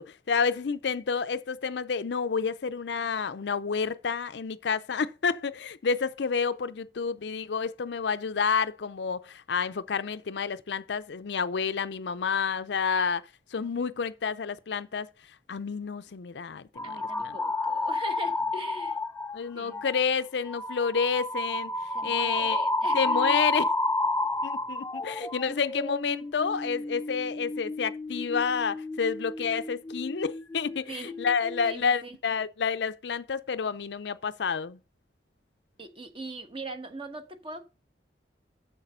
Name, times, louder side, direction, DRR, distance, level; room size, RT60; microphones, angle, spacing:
voice 1, 0.0-15.1 15.5-17.4 19.3-21.7 22.0-22.6 22.9-23.7 24.4-34.8, left 5 dB, 70° left, 0.5 m, -29 dB
sound 1, 16.8-19.4 19.7-20.0 20.5-30.8 31.1-31.7, left 2 dB, 10° left, 0.4 m, -31 dB
voice 2, 16.8-19.0 19.5-19.8 21.9-23.0 30.9-31.1 31.6-32.2 35.8-37.6, right 2 dB, 30° right, 1.1 m, -41 dB
7.5 x 6.6 x 5.5 m
head